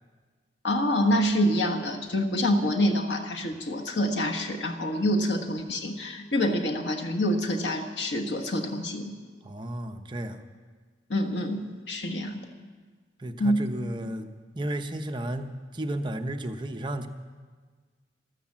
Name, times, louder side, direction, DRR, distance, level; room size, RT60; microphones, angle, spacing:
voice 1, 0.6-9.2 11.1-12.4 13.4-13.7, left 1 dB, 90° left, 3 dB, 1.4 m, -26 dB
voice 2, 9.4-10.4 13.2-14.3 14.5-17.1, right 1 dB, 25° right, 6 dB, 0.7 m, -33 dB
13.0 x 13.0 x 7.4 m, 1.5 s
head